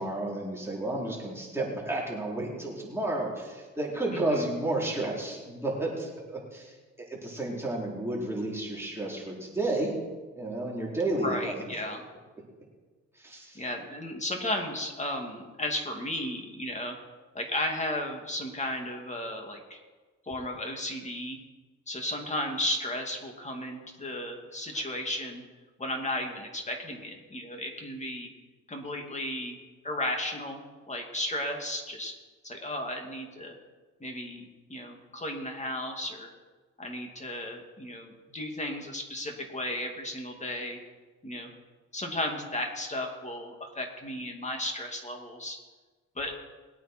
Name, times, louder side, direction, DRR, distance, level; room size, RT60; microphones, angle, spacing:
voice 1, 0.0-10.0 10.3-11.6 13.2-13.6 24.7-24.8, right 2 dB, 10° right, -4 dB, 4.0 m, -32 dB
voice 2, 4.1-4.5 11.2-12.0 13.5-17.0 17.3-19.8 20.3-21.4 21.9-25.4 25.8-28.3 28.7-32.1 32.4-33.6 34.0-36.3 36.8-40.8 41.2-41.5 41.9-45.6 46.2-46.4, left 1 dB, 25° left, 2 dB, 2.7 m, -34 dB
20.5 x 9.0 x 4.6 m, 1.3 s
cardioid pair, 90°, 30 cm